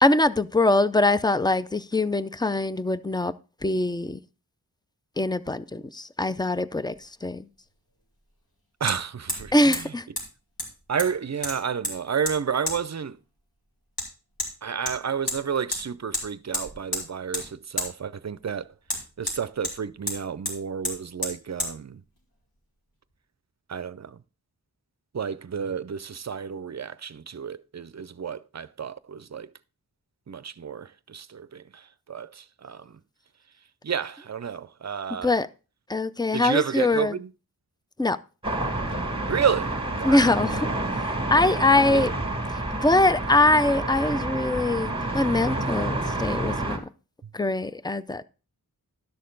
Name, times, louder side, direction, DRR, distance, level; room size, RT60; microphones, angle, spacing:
voice 1, 0.0-3.3 3.6-4.2 5.2-7.5 9.5-10.1 35.2-35.5 35.9-37.2 38.0-38.2 40.0-40.7 41.0-42.1 42.7-46.8 47.3-48.2, left 2 dB, 10° left, 0.4 m, -23 dB
Hammer, 6.9-7.0 8.9-9.0 9.3-9.5 9.7-9.8 10.2-10.3 10.6-11.1 11.4-11.9 12.3-12.4 12.7-12.8 14.0-14.1 14.4-14.5 14.9-15.4 15.7-15.8 16.1-16.2 16.5-17.0 17.3-17.5 17.8-17.9 18.9-19.8 20.1-20.2 20.4-20.6 20.8-21.0 21.2-21.3 21.6-21.7, left 1 dB, 70° left, 2.6 m, -30 dB
voice 2, 8.8-9.8 10.9-13.2 14.6-18.7 19.2-22.0 23.7-24.2 25.1-29.5 30.3-31.8 32.1-32.9 33.8-35.3 36.3-37.3 39.3-40.4 41.9-42.1, right 7 dB, 45° right, 0.5 m, -30 dB
sound 1, 38.4-46.8, right 2 dB, 15° right, 1.9 m, -29 dB
11.5 x 6.6 x 3.8 m
wide cardioid pair, 50°, 37 cm